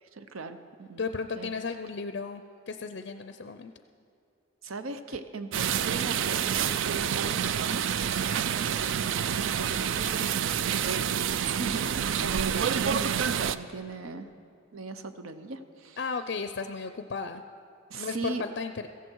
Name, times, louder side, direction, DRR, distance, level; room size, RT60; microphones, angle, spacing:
voice 1, 0.0-1.0 1.4-1.5 4.6-8.0 8.7-14.3 14.7-16.0 17.9-18.4, right 4 dB, 85° right, 10 dB, 0.8 m, -39 dB
voice 2, 1.0-3.7 16.0-17.4 17.9-18.9, left 4 dB, 50° left, 8 dB, 0.4 m, -34 dB
sound 1, 5.5-13.6, right 8 dB, 65° right, 0.4 m, -28 dB
16.0 x 15.0 x 4.6 m, 2.4 s
head